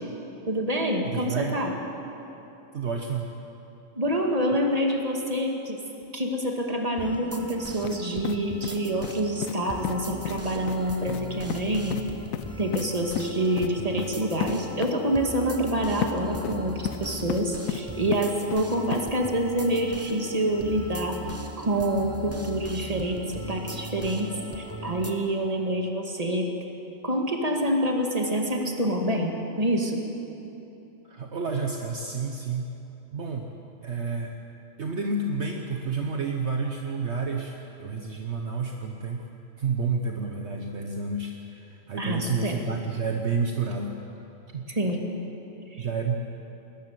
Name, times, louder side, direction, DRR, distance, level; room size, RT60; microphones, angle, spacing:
voice 1, 0.5-1.7 4.0-5.8 6.1-12.0 12.6-23.2 23.5-26.5 27.0-30.0 42.0-42.6 44.7-45.0 45.8-45.9, right 1 dB, 30° right, 1 dB, 2.1 m, -27 dB
voice 2, 1.0-1.6 2.7-3.3 31.1-32.7 33.1-33.6 33.8-34.3 34.8-39.3 39.6-44.0 44.5-44.7 45.8-46.2, right 4 dB, 60° right, 2 dB, 1.3 m, -30 dB
sound 1, 7.0-25.1, right 1 dB, 10° right, 1.1 m, -39 dB
sound 2, 7.8-8.0 8.2-9.2 9.4-9.6 9.8-10.0 10.2-10.4 10.7-10.8 11.1-11.2 11.5-11.6 11.9-12.0 12.3-12.9 13.2-13.3 13.6-13.7 14.0-14.1 14.4-14.5 14.8-14.9 16.0-16.1 16.4-17.0 17.3-17.8 18.1-18.6 18.9-19.0, left 11 dB, 90° left, 1.0 m, -32 dB
21.0 x 13.0 x 9.3 m, 3.0 s
omnidirectional pair, 1.4 m